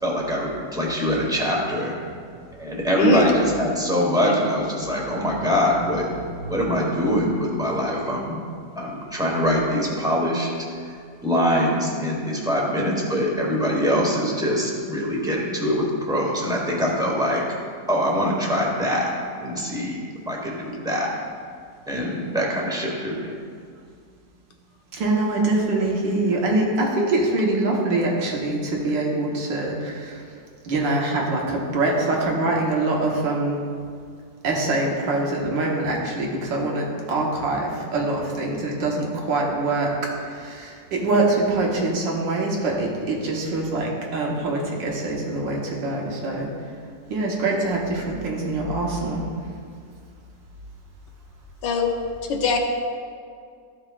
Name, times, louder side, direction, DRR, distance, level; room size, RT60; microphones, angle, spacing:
voice 1, 0.0-1.9 2.5-6.1 6.4-8.4 8.7-10.5 10.7-10.9 11.2-17.4 17.9-19.1 19.4-21.1 21.9-23.3, equal, 5° right, -3 dB, 1.0 m, -23 dB
voice 2, 2.9-3.3 51.6-51.9 52.3-52.6, left 4 dB, 75° left, 2 dB, 1.5 m, -21 dB
voice 3, 24.9-30.2 30.6-33.6 34.4-39.9 40.2-46.5 47.1-49.6, right 2 dB, 85° right, -2 dB, 1.9 m, -24 dB
14.0 x 5.5 x 2.4 m, 2.2 s
omnidirectional pair, 1.9 m